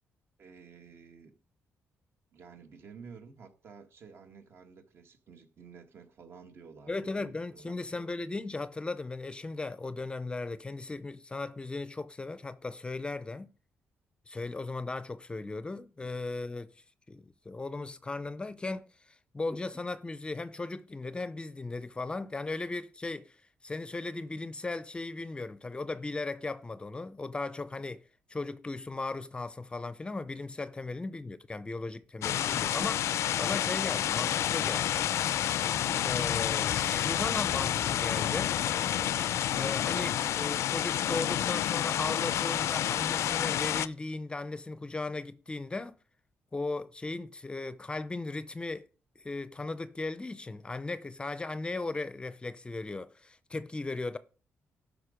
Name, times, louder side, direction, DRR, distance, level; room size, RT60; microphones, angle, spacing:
voice 1, 0.4-1.3 2.3-7.7 16.0-16.2 30.7-31.0, right 5 dB, 55° right, 1.6 m, -52 dB
voice 2, 6.9-13.5 14.3-28.0 28.3-35.0 36.0-38.6 39.5-46.0 46.5-48.8 49.2-54.2, left 3 dB, 20° left, 0.5 m, -37 dB
sound 1, 32.2-43.9, left 11 dB, 75° left, 0.4 m, -29 dB
12.5 x 5.3 x 5.1 m
cardioid pair, 100°, 5 cm